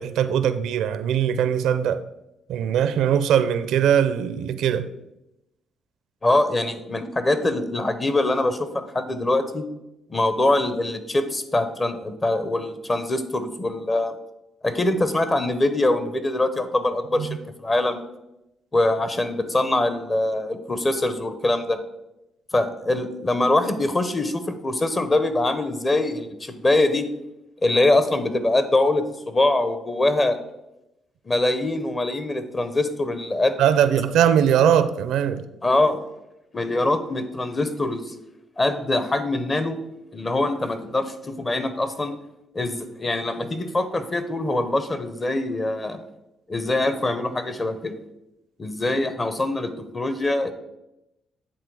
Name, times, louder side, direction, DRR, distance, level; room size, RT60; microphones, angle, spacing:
voice 1, 0.0-2.0 2.5-4.9 17.2-17.4 33.6-35.5, right 9 dB, 85° right, 0.4 m, -21 dB
voice 2, 6.2-9.7 10.1-14.2 14.6-18.0 18.7-21.8 22.5-27.1 27.6-30.4 31.3-33.5 35.6-36.0 36.5-38.1 38.6-39.8 40.1-42.1 42.5-46.0 46.5-47.9 48.6-50.5, left 2 dB, 25° left, 0.8 m, -23 dB
8.8 x 3.8 x 4.7 m
cardioid pair, 90°, 0 cm